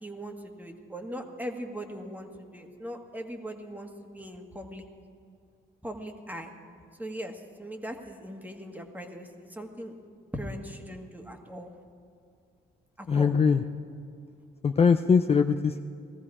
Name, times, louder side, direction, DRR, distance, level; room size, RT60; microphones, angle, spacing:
voice 1, 0.0-4.9 5.8-6.5 7.0-9.9 10.3-11.7 13.0-13.3, equal, 10° right, 4 dB, 1.7 m, -39 dB
voice 2, 13.1-13.7 14.6-15.8, left 5 dB, 30° left, 7 dB, 0.5 m, -22 dB
19.0 x 14.0 x 4.9 m, 2.4 s
cardioid pair, 90°, 20 cm